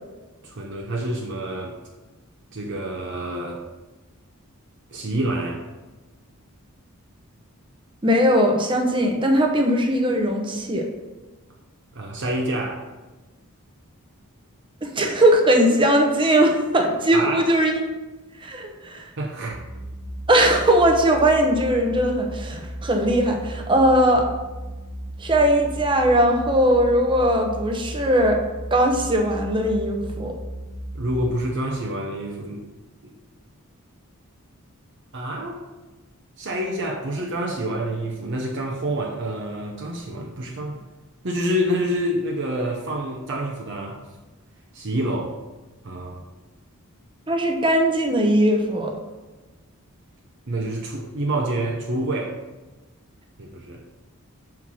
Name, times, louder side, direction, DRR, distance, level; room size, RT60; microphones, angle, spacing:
voice 1, 0.4-1.8 2.5-3.6 4.9-5.6 11.9-12.8 17.1-17.4 19.2-19.6 30.9-32.7 33.0-33.1 35.1-35.6 36.4-40.8 41.2-44.0 44.7-45.3 45.8-46.2 50.5-52.3 53.4-53.8, right 1 dB, 55° right, -1 dB, 0.7 m, -27 dB
voice 2, 8.0-10.9 14.8-17.9 18.4-19.0 20.3-24.3 25.2-28.4 28.7-30.3 47.3-48.9, right 1 dB, 20° right, 2 dB, 0.8 m, -19 dB
sound 1, 19.5-31.3, equal, 90° right, 1.1 m, -35 dB
5.6 x 4.4 x 6.1 m, 1.2 s
head